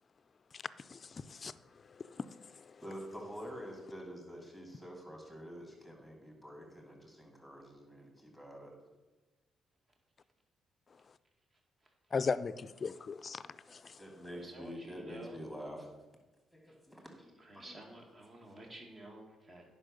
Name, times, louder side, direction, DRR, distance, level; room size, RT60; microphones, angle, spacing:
voice 1, 0.9-1.5 2.1-2.5 12.1-13.4 13.7-13.9, left 5 dB, 40° left, 0.4 m, -37 dB
voice 2, 2.8-8.7 13.4-15.9 16.5-18.0 18.4-18.5, equal, 5° right, 2.9 m, -48 dB
voice 3, 14.3-15.4 17.5-19.6, right 1 dB, 35° right, 2.0 m, -51 dB
9.9 x 5.5 x 6.6 m
cardioid pair, 90°, 0 cm